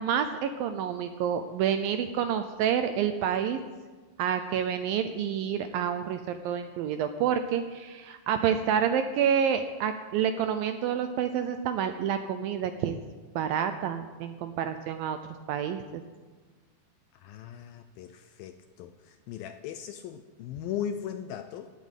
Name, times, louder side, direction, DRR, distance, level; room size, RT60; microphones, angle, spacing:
voice 1, 0.0-3.6 4.2-12.9 13.4-15.2 15.5-16.0, right 8 dB, 80° right, 8 dB, 2.1 m, -28 dB
voice 2, 17.2-18.9 19.3-21.7, left 9 dB, 80° left, 9 dB, 2.2 m, -38 dB
16.5 x 8.4 x 9.1 m, 1.3 s
omnidirectional pair, 4.8 m